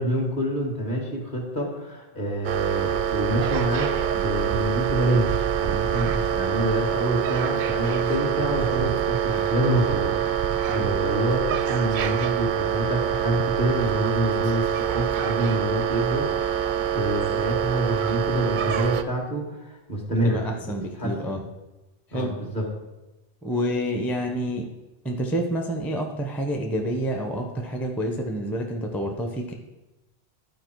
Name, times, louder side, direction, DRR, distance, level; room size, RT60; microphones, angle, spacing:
voice 1, 0.0-21.3 22.1-22.7, equal, 45° left, 0 dB, 2.1 m, -27 dB
sound 1, 2.4-19.0, right 9 dB, 60° right, 0.5 m, -25 dB
voice 2, 20.2-21.4 22.1-22.3 23.4-24.7 25.0-29.5, equal, ahead, 2 dB, 0.7 m, -28 dB
12.0 x 4.7 x 4.6 m, 1.0 s
omnidirectional pair, 1.1 m